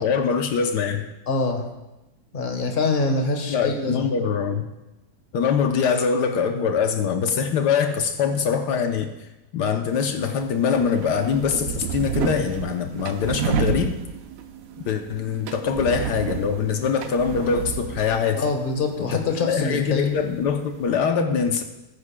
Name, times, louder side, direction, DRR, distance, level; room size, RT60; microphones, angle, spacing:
voice 1, 0.0-1.1 3.5-4.7 5.3-9.1 9.5-13.9 14.9-18.4 19.1-21.6, left 6 dB, 80° left, 5 dB, 1.4 m, -23 dB
voice 2, 1.3-1.7 2.3-4.1 18.4-20.1, left 3 dB, 35° left, 4 dB, 1.3 m, -24 dB
sound 1, 9.9-21.0, right 6 dB, 65° right, 1.0 m, -31 dB
19.5 x 9.7 x 2.2 m, 1.0 s
omnidirectional pair, 1.8 m